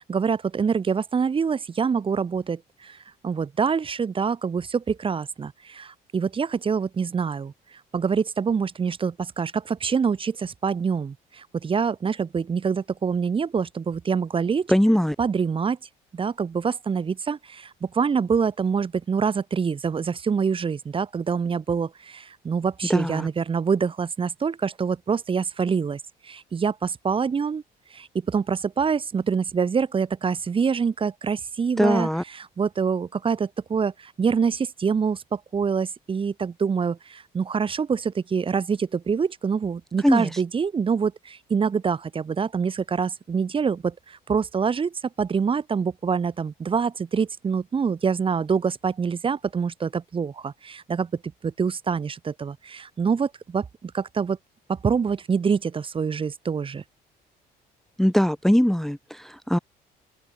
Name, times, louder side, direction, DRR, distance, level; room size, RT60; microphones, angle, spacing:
voice 1, 0.1-3.0 3.2-7.5 7.9-14.7 15.2-15.8 16.1-27.6 27.9-32.1 32.4-51.1 51.4-54.4 54.7-56.8, right 6 dB, 30° right, 1.8 m, -25 dB
voice 2, 14.7-15.2 22.9-23.3 31.8-32.2 40.0-40.4 58.0-59.6, equal, ahead, 1.2 m, -21 dB
open air
cardioid pair, 110°, 17 cm